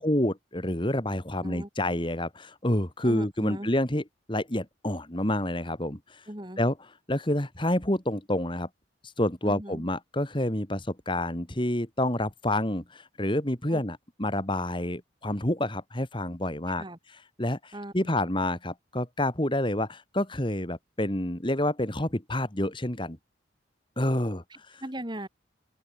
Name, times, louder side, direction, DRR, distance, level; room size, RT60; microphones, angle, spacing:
voice 1, 0.0-4.0 4.3-6.2 6.6-6.7 7.1-8.7 9.0-16.8 17.4-23.2 24.0-24.8, left 1 dB, 25° left, 2.5 m, -28 dB
voice 2, 3.0-3.7 6.3-6.6 9.4-9.9 13.7-13.8 16.8-17.0 17.7-18.3 24.5-25.3, right 1 dB, 25° right, 5.2 m, -39 dB
head